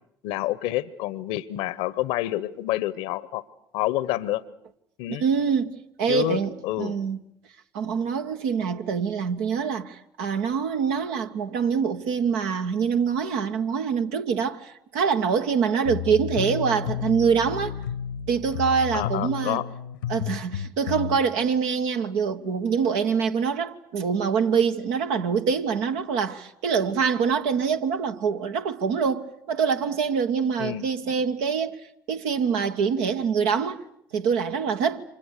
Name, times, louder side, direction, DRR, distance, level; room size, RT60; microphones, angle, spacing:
voice 1, 0.2-3.4 3.7-4.4 5.0-5.2 6.1-7.0 18.9-19.7 30.6-30.8, left 15 dB, 70° left, 1.0 m, -28 dB
voice 2, 5.1-6.5 6.8-7.2 7.7-17.7 18.3-19.6 20.1-31.8 32.1-33.8 34.1-35.0, right 6 dB, 70° right, 1.4 m, -25 dB
sound 1, 15.8-21.2, left 9 dB, 85° left, 1.2 m, -32 dB
30.0 x 26.0 x 6.6 m
hypercardioid pair, 55°, 10 cm